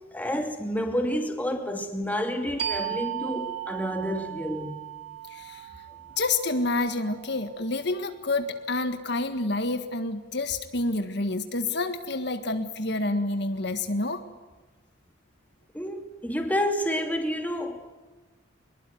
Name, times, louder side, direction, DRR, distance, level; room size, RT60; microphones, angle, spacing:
voice 1, 0.1-4.8 15.7-17.9, equal, 10° left, 2.7 m, -29 dB
sound 1, 2.6-7.9, right 10 dB, 55° right, 3.8 m, -36 dB
voice 2, 5.3-5.7 6.2-14.2, left 2 dB, 60° left, 1.7 m, -28 dB
24.0 x 21.5 x 9.4 m
head